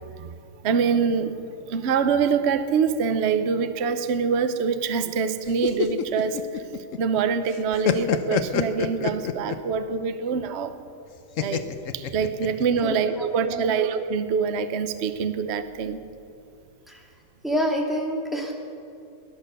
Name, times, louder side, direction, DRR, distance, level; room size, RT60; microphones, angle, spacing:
voice 1, 0.6-1.4 1.7-6.6 7.0-10.8 11.4-11.7 11.9-16.0, right 6 dB, 70° right, 10 dB, 0.6 m, -25 dB
sound 1, 5.5-7.2 7.5-9.7 11.4-12.8, left 9 dB, 80° left, 0.7 m, -27 dB
voice 2, 12.8-13.8 16.9-17.1 17.4-18.5, equal, ahead, -2 dB, 2.1 m, -28 dB
18.0 x 11.0 x 6.8 m, 2.5 s
omnidirectional pair, 2.3 m